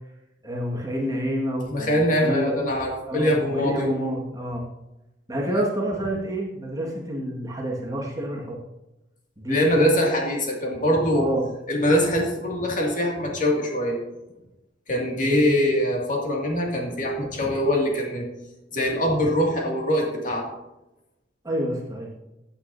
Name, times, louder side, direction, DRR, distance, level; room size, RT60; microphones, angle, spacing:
voice 1, 0.4-2.6 3.0-4.7 5.3-8.6 9.4-9.9 11.1-11.5 15.1-15.5 21.4-22.1, equal, 20° right, -2 dB, 1.7 m, -28 dB
voice 2, 1.7-3.9 5.5-5.7 9.5-11.3 11.7-14.0 14.9-18.2 18.7-20.5, equal, 45° left, -1 dB, 2.3 m, -23 dB
15.0 x 8.4 x 2.7 m, 0.95 s
head